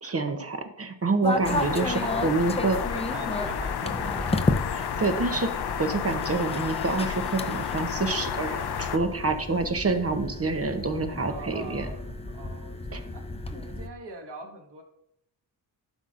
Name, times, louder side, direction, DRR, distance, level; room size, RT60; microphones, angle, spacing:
voice 1, 0.0-2.8 4.7-5.5 5.8-11.9 12.9-13.0, right 3 dB, 35° right, 6 dB, 0.8 m, -27 dB
voice 2, 1.1-4.3 11.2-14.8, right 2 dB, 70° right, 2 dB, 1.6 m, -41 dB
sound 1, 1.2-13.9, left 2 dB, 15° left, 0.6 m, -33 dB
sound 2, 1.4-9.0, left 8 dB, 60° left, 0.6 m, -31 dB
11.5 x 5.6 x 2.5 m, 0.79 s
wide cardioid pair, 90°, 44 cm